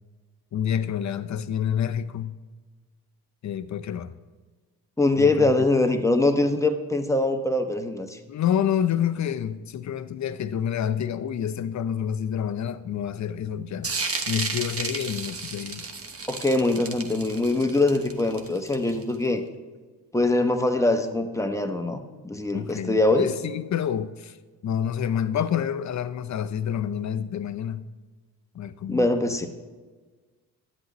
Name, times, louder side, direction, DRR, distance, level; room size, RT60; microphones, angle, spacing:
voice 1, 0.5-2.4 3.4-4.1 5.2-5.5 8.3-13.9 14.3-15.9 22.5-24.4 24.6-27.9 28.5-29.1, left 9 dB, 45° left, 0.6 m, -28 dB
voice 2, 5.0-8.2 16.3-19.4 20.1-22.0 22.2-23.3 28.9-29.5, left 2 dB, 10° left, 1.0 m, -23 dB
sound 1, 13.8-19.2, right 4 dB, 35° right, 1.1 m, -33 dB
11.0 x 7.9 x 3.1 m
supercardioid pair, 65°, 39 cm